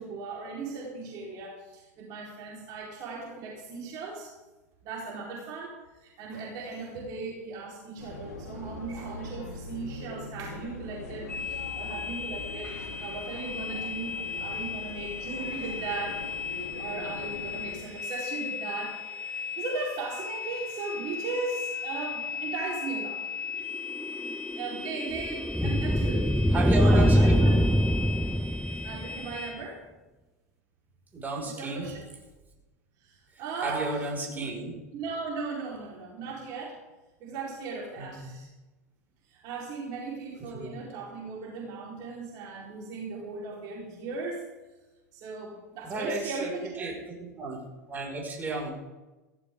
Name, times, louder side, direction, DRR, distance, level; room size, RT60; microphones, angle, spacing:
voice 1, 0.0-4.3 4.8-16.2 16.6-19.0 19.6-23.2 24.6-26.4 26.8-27.5 28.8-29.8 31.4-32.0 33.0-34.0 34.3-34.4 34.9-36.8 37.2-38.5 39.3-44.4 45.1-46.9, right 4 dB, 50° right, -4 dB, 4.6 m, -37 dB
sound 1, 8.0-17.7, left 2 dB, 85° left, 3.2 m, -42 dB
sound 2, 11.3-29.5, left 5 dB, 15° left, 5.9 m, -37 dB
sound 3, 23.7-29.3, equal, ahead, 0.6 m, -24 dB
voice 2, 25.6-25.9 26.5-27.5 28.1-28.2 31.1-31.9 33.3-34.7 38.0-38.3 40.5-40.7 45.8-46.5 46.8-47.0 47.4-47.6 47.9-48.7, right 3 dB, 20° right, -1 dB, 6.0 m, -33 dB
16.5 x 16.5 x 3.9 m, 1.1 s
hypercardioid pair, 90°, 8 cm